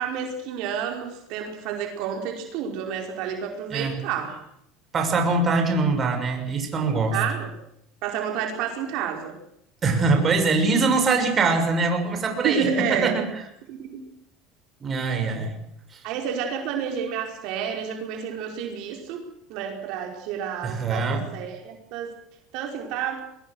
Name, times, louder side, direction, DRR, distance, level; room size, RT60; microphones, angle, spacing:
voice 1, 0.0-4.4 7.1-7.5 8.0-9.3 12.4-13.1 13.7-14.0 16.0-19.2 19.5-22.1 22.5-23.2, right 7 dB, 60° right, 3 dB, 4.9 m, -30 dB
voice 2, 4.9-7.2 9.8-13.2 14.8-15.5 20.6-21.2, right 3 dB, 25° right, 4 dB, 6.5 m, -23 dB
23.0 x 21.5 x 6.4 m, 0.77 s
supercardioid pair, 140°, 0 cm